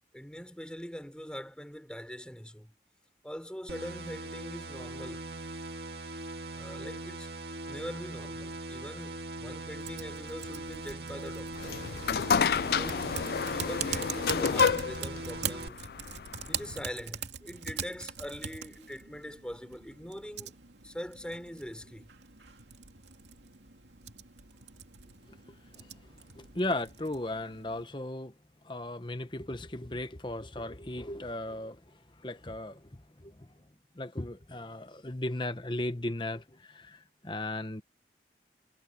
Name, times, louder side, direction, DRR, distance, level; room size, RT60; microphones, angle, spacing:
voice 1, 0.1-2.8 3.2-5.3 6.5-7.3 7.7-11.8 12.7-15.9 16.5-22.1, equal, 5° left, 4.8 m, -43 dB
sound 1, 3.7-15.7, right 2 dB, 65° right, 2.3 m, -41 dB
Typing, 9.8-27.8, right 7 dB, 90° right, 2.6 m, -43 dB
sound 2, 11.6-16.8, left 6 dB, 60° left, 0.4 m, -29 dB
voice 2, 25.5-25.9 26.3-28.3 28.6-33.5 33.9-37.8, left 1 dB, 25° left, 1.1 m, -36 dB
head